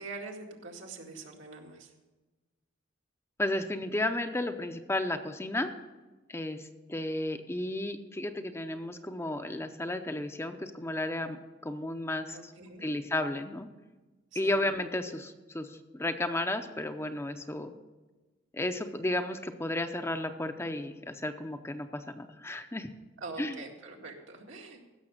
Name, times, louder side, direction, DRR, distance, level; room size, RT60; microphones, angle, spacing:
voice 1, 0.0-1.9 12.3-12.9 14.3-14.5 23.2-24.9, right 3 dB, 80° right, 0 dB, 2.1 m, -44 dB
voice 2, 3.4-5.7 6.3-12.4 12.8-13.7 14.3-17.7 18.5-22.9 23.4-23.6, left 1 dB, 15° left, 7 dB, 0.6 m, -33 dB
15.5 x 6.6 x 6.5 m, 1.2 s
head